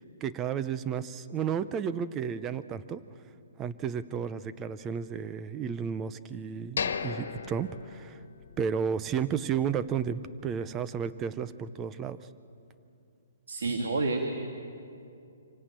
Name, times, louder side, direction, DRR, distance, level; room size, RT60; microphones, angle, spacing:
voice 1, 0.2-3.0 3.6-8.2 8.6-12.2, right 7 dB, 15° right, 14 dB, 0.6 m, -32 dB
sound 1, 6.8-8.7 9.0-9.1 9.6-9.8, left 6 dB, 70° left, 1.5 m, -35 dB
voice 2, 13.5-14.2, right 3 dB, 75° right, 3 dB, 2.1 m, -29 dB
26.0 x 17.5 x 8.9 m, 2.6 s
hypercardioid pair, 165°, 0 cm